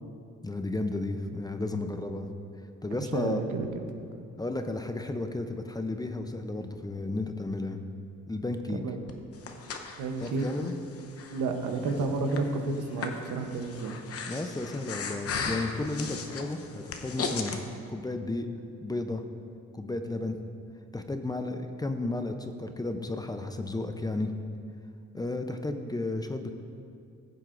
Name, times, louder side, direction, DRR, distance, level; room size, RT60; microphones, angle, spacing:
voice 1, 0.4-2.3 2.8-3.4 4.4-7.8 8.3-8.8 10.2-10.7 14.3-17.6 17.9-18.5 18.8-19.2 19.7-20.4 20.9-24.3 25.1-26.5, left 2 dB, 15° left, 7 dB, 0.5 m, -33 dB
voice 2, 3.1-3.7 8.8-9.0 10.0-10.5 11.3-14.0, right 3 dB, 85° right, 5 dB, 0.9 m, -31 dB
Breathing, 9.1-17.6, left 5 dB, 50° left, 0.9 m, -37 dB
15.0 x 7.6 x 2.5 m, 2.4 s
cardioid pair, 90°, 30 cm